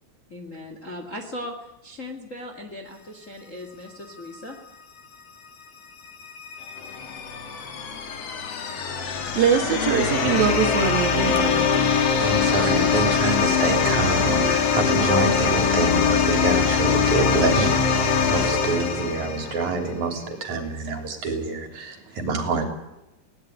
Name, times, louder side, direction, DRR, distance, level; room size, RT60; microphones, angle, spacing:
voice 1, 0.3-4.6, left 1 dB, 25° left, 4 dB, 1.8 m, -38 dB
sound 1, 6.0-19.9, left 6 dB, 50° left, 2.7 m, -22 dB
voice 2, 9.3-11.7, right 7 dB, 75° right, 6 dB, 3.8 m, -22 dB
voice 3, 11.8-22.6, right 3 dB, 55° right, 5 dB, 4.4 m, -26 dB
21.0 x 18.0 x 9.5 m, 0.94 s
omnidirectional pair, 4.3 m